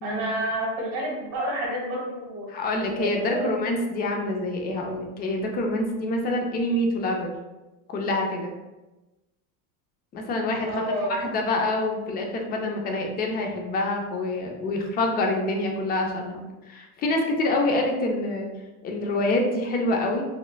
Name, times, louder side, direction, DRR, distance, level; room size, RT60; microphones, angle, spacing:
voice 1, 0.0-2.7 3.0-3.5 10.7-11.2, right 1 dB, 80° right, -2 dB, 1.4 m, -29 dB
voice 2, 2.5-7.3 7.9-8.5 10.1-10.8 11.1-18.5 18.8-20.2, left 2 dB, 25° left, 1 dB, 0.3 m, -26 dB
4.2 x 2.4 x 2.3 m, 1.1 s
supercardioid pair, 135°, 44 cm